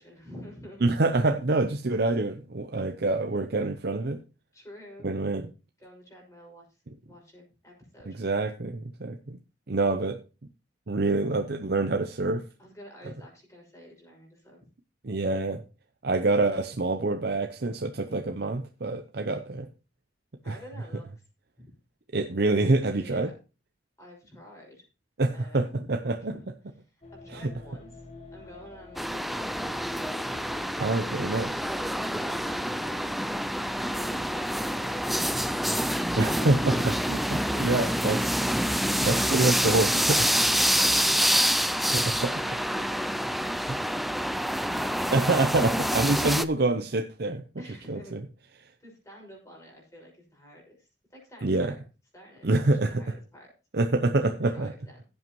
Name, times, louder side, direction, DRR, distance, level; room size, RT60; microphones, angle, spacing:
voice 1, 0.0-0.9 4.5-5.1 5.8-6.8 7.0-8.2 12.6-14.6 20.4-21.1 21.6-21.7 22.9-23.3 24.0-24.9 25.3-25.9 26.3-26.4 26.9-28.1 28.3-31.0 32.3-33.1 37.0-38.4 40.8-41.3 41.7-45.3 46.1-46.7 47.6-48.1 48.8-51.8 52.1-53.5 54.3-55.0, equal, 15° left, -1 dB, 6.1 m, -49 dB
voice 2, 0.8-4.2 5.0-5.5 8.1-9.4 9.7-10.2 10.9-12.4 15.0-15.6 16.0-19.7 20.5-20.6 22.1-23.3 25.2-26.3 27.4-27.5 30.8-31.6 36.2-38.2 38.6-40.3 41.8-42.3 45.1-47.4 47.9-48.2 51.4-51.7 52.4-53.0 53.7-54.7, right 2 dB, 60° right, 5 dB, 0.7 m, -26 dB
sound 1, 27.0-36.3, left 2 dB, 35° left, 1.8 m, -47 dB
sound 2, 29.0-46.5, equal, ahead, 0.4 m, -27 dB
16.0 x 7.9 x 3.1 m, 0.31 s
head